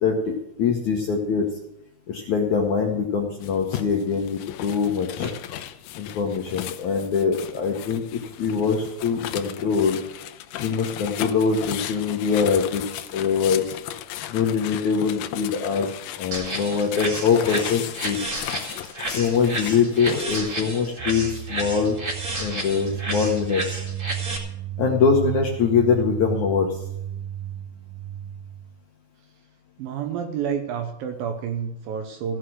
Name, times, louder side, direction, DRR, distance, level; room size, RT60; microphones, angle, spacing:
voice 1, 0.0-1.5 2.1-5.3 6.0-10.0 10.6-13.6 14.3-15.9 16.2-18.2 19.2-22.0 22.4-23.6 24.8-26.8, left 6 dB, 65° left, 1 dB, 1.9 m, -23 dB
sound 1, 3.4-20.4, left 12 dB, 85° left, 2.2 m, -36 dB
sound 2, 16.3-24.4, right 2 dB, 30° right, 1.8 m, -32 dB
sound 3, 21.0-28.7, right 11 dB, 90° right, 2.9 m, -34 dB
voice 2, 29.8-32.4, right 7 dB, 75° right, 5 dB, 2.3 m, -29 dB
16.0 x 6.6 x 7.8 m, 0.79 s
omnidirectional pair, 4.9 m